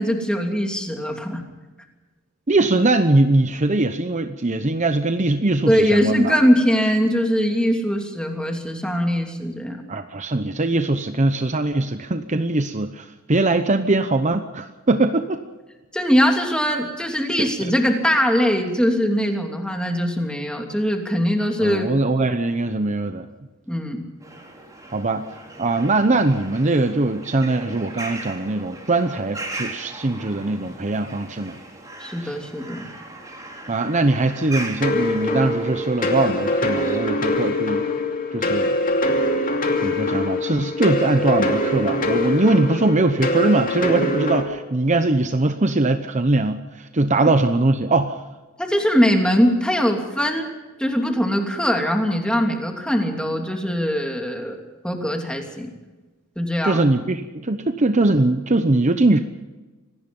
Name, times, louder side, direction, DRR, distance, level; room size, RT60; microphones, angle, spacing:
voice 1, 0.0-1.4 5.7-9.8 15.9-21.9 23.7-24.0 32.0-32.9 48.6-50.5 50.8-55.7 56.4-56.8, equal, 5° left, 3 dB, 3.0 m, -21 dB
voice 2, 2.5-6.4 9.9-15.4 17.4-17.7 21.6-23.3 24.9-25.3 25.6-31.6 32.2-32.3 33.7-37.9 38.3-38.7 39.8-48.2 56.6-59.2, right 2 dB, 35° right, 8 dB, 0.9 m, -21 dB
sound 1, 24.2-37.0, right 2 dB, 15° right, 4.3 m, -38 dB
sound 2, 34.8-44.4, left 1 dB, 40° left, 2.8 m, -23 dB
25.5 x 18.5 x 5.5 m, 1.2 s
head